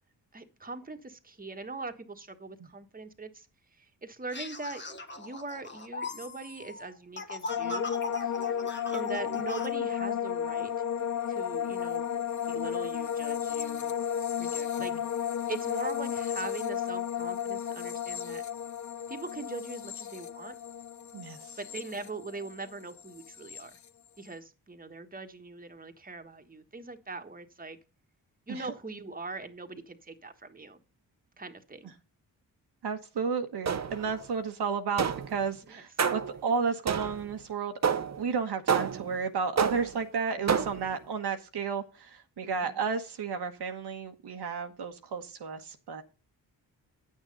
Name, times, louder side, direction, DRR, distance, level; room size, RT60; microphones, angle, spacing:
voice 1, 0.3-3.5 3.7-4.8 5.2-7.9 8.2-8.6 8.9-10.7 11.3-12.0 12.5-13.9 14.4-14.9 15.5-18.4 19.1-20.5 21.6-23.8 24.2-27.8 28.5-30.8 31.4-31.9 35.6-35.8 40.4-40.7 42.4-42.8, right 3 dB, 20° right, 6 dB, 1.4 m, -41 dB
sound 1, 4.3-9.7, left 2 dB, 25° left, 1.2 m, -40 dB
sound 2, 7.5-22.7 23.0-23.6, left 9 dB, 45° left, 0.6 m, -33 dB
voice 2, 21.1-21.6 28.5-28.6 32.8-37.7 38.2-46.0, right 5 dB, 65° right, 5 dB, 1.2 m, -32 dB
sound 3, 33.7-34.2 35.0-35.4 36.0-36.4 36.9-37.3 37.8-38.2 38.7-39.2 39.6-40.0 40.5-40.9, right 6 dB, 40° right, 0.8 m, -29 dB
8.8 x 6.5 x 5.3 m, 0.33 s
supercardioid pair, 45°, 43 cm